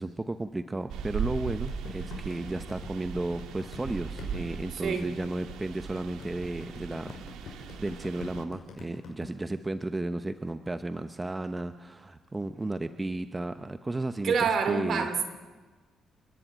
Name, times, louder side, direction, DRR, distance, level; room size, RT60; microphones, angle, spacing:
voice 1, 0.0-7.1 7.4-14.3 14.7-15.1, right 2 dB, 20° right, 10 dB, 0.8 m, -34 dB
sound 1, 0.9-8.4, right 7 dB, 85° right, 1.6 m, -38 dB
sound 2, 1.7-9.3, left 5 dB, 75° left, 6.0 m, -45 dB
voice 2, 4.7-5.1 14.2-15.2, right 5 dB, 60° right, 8 dB, 2.8 m, -27 dB
29.5 x 11.0 x 9.0 m, 1.3 s
cardioid pair, 90°, 0 cm